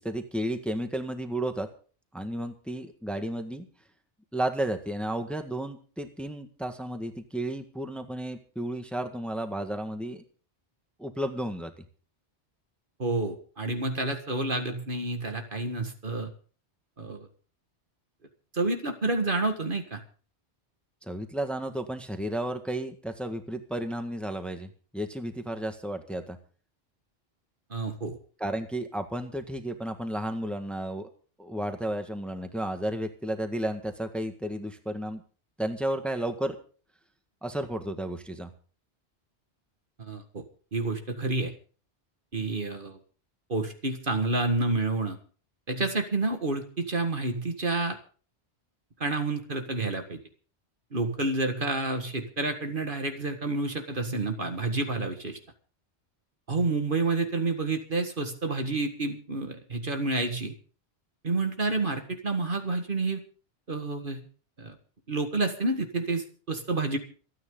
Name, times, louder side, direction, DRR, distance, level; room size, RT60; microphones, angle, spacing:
voice 1, 0.0-1.7 2.1-3.7 4.3-10.2 11.0-11.8 21.1-26.4 28.4-31.1 31.4-35.2 35.6-36.6 37.4-38.5, right 1 dB, ahead, 6 dB, 1.6 m, -33 dB
voice 2, 13.0-16.3 17.0-17.3 18.5-20.0 27.7-28.2 40.0-40.4 40.7-41.5 42.3-43.0 43.5-45.2 45.7-48.0 49.0-50.2 50.9-55.4 56.5-60.5 61.2-63.2 63.7-64.2 64.6-64.7 65.1-67.0, right 3 dB, 50° right, 6 dB, 1.9 m, -29 dB
26.5 x 9.6 x 3.8 m, 0.40 s
omnidirectional pair, 1.2 m